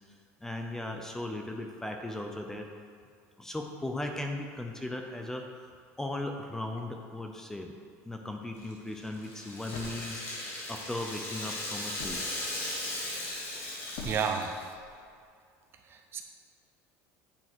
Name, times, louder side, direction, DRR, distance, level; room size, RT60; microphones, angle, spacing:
voice 1, 0.1-2.7 3.4-5.7 6.0-7.7 8.1-12.2, left 1 dB, 5° left, 3 dB, 0.6 m, -37 dB
Rattle (instrument), 8.6-14.8, left 1 dB, 40° left, 1.9 m, -37 dB
sound 1, 9.1-9.3 9.7-10.6 11.5-11.6 12.0-12.4 13.3-13.6 13.9-14.2, left 4 dB, 70° left, 1.2 m, -43 dB
voice 2, 14.0-14.5 15.9-16.2, right 6 dB, 35° right, 4 dB, 0.6 m, -31 dB
8.8 x 3.7 x 6.1 m, 2.2 s
cardioid pair, 140°, 7 cm